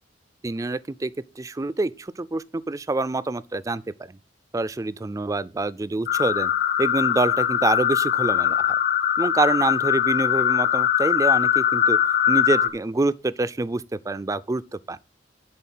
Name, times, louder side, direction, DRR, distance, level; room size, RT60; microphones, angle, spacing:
voice 1, 0.4-1.1 1.4-3.8 4.1-4.2 4.5-6.5 6.8-8.8 9.2-12.0 12.3-15.0, right 2 dB, 20° right, 0.3 m, -26 dB
sound 1, 6.1-12.7, left 10 dB, 45° left, 0.9 m, -21 dB
11.0 x 4.1 x 7.4 m
head